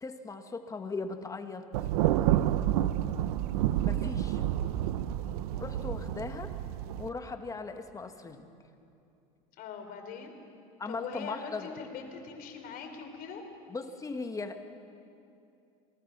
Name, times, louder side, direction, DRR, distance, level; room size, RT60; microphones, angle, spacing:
voice 1, 0.0-1.6 3.8-4.4 5.6-6.5 7.0-8.5 10.8-11.7 13.7-14.6, left 3 dB, 15° left, 7 dB, 1.6 m, -38 dB
Thunder, 1.7-7.1, right 12 dB, 80° right, 0.7 m, -29 dB
voice 2, 9.6-10.3 10.9-13.4, left 6 dB, 50° left, 4 dB, 4.1 m, -42 dB
27.0 x 19.0 x 6.1 m, 2.6 s
supercardioid pair, 115°, 19 cm